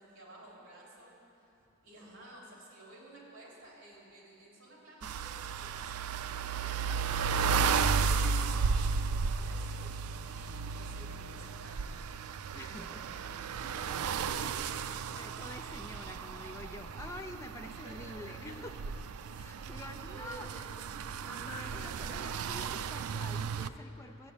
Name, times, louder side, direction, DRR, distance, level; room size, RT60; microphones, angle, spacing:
voice 1, 0.0-1.5 1.8-7.4 7.8-12.1 12.5-13.3 13.6-15.0 17.8-18.6 19.3-20.8 21.5-21.6, right 1 dB, 60° right, -4 dB, 3.8 m, -54 dB
sound 1, 5.0-23.7, right 5 dB, 90° right, 0.4 m, -34 dB
voice 2, 12.5-13.0 14.0-14.6 15.1-18.8 19.4-20.6 21.2-24.3, left 1 dB, 15° left, 4 dB, 0.6 m, -47 dB
13.5 x 7.7 x 8.5 m, 2.8 s
head